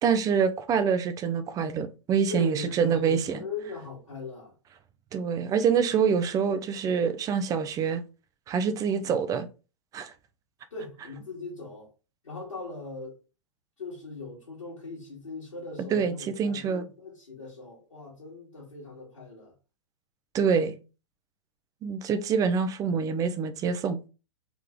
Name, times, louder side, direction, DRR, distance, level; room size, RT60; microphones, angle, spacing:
voice 1, 0.0-3.4 5.1-8.0 8.5-9.5 9.9-10.1 15.9-16.9 20.3-20.8 21.8-24.0, right 6 dB, 20° right, 0.5 m, -26 dB
voice 2, 2.3-4.5 9.0-9.2 10.7-11.9 12.2-13.2 13.8-19.5, left 3 dB, 80° left, 1.7 m, -40 dB
3.7 x 3.3 x 3.6 m
figure-of-eight pair, 105°, 16 cm